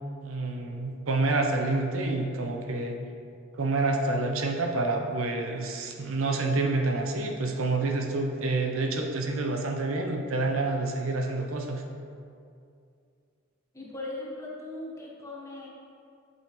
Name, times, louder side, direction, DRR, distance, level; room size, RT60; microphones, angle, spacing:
voice 1, 0.2-3.0 3.5-11.8, right 2 dB, 80° right, 2 dB, 0.7 m, -28 dB
voice 2, 13.7-15.7, left 2 dB, 15° left, -4 dB, 1.0 m, -39 dB
8.6 x 5.4 x 3.0 m, 2.4 s
head